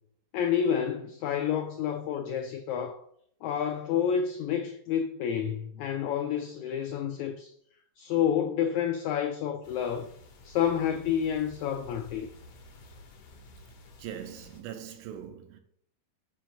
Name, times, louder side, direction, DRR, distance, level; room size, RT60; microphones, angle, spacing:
voice 1, 0.3-3.0 3.4-7.5 8.0-10.1 10.4-12.3, left 8 dB, 85° left, 1.6 m, -29 dB
sound 1, 9.6-14.6, left 1 dB, 65° left, 1.9 m, -52 dB
voice 2, 14.0-15.6, right 10 dB, 80° right, 2.1 m, -41 dB
7.1 x 2.6 x 5.7 m
omnidirectional pair, 3.8 m